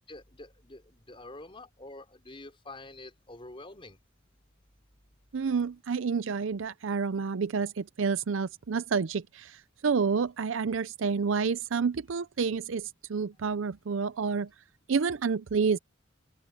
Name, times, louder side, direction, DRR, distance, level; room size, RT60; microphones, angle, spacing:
voice 1, 0.1-4.0, left 2 dB, 25° left, 4.4 m, -47 dB
voice 2, 5.3-14.5 14.9-15.8, right 5 dB, 75° right, 0.5 m, -29 dB
head